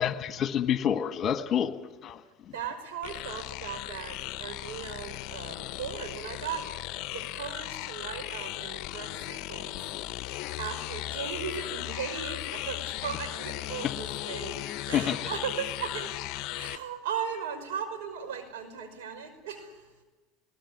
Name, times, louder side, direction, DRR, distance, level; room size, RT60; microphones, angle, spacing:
voice 1, 0.0-1.8 2.0-2.2 13.8-13.9 14.9-15.2 16.7-16.8, left 9 dB, 40° left, 9 dB, 1.7 m, -28 dB
voice 2, 2.5-6.7 7.1-9.8 10.6-16.1 16.5-20.0, right 7 dB, 80° right, 7 dB, 5.6 m, -37 dB
sound 1, 3.0-16.8, left 16 dB, 60° left, 0.7 m, -37 dB
22.0 x 19.5 x 9.8 m, 1.2 s
hypercardioid pair, 95°, 0 cm